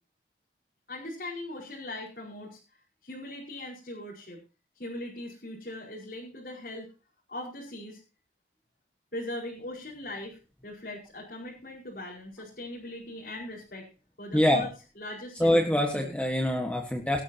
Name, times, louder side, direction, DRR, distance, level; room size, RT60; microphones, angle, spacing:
voice 1, 0.9-2.6 3.0-4.4 4.7-6.9 7.3-8.0 9.1-13.9 14.2-14.7 14.9-15.7 15.9-16.1, left 1 dB, 55° left, -5 dB, 5.1 m, -40 dB
voice 2, 14.3-14.7 15.4-17.2, left 1 dB, 5° left, 2 dB, 1.5 m, -24 dB
18.5 x 12.5 x 2.9 m, 0.32 s
head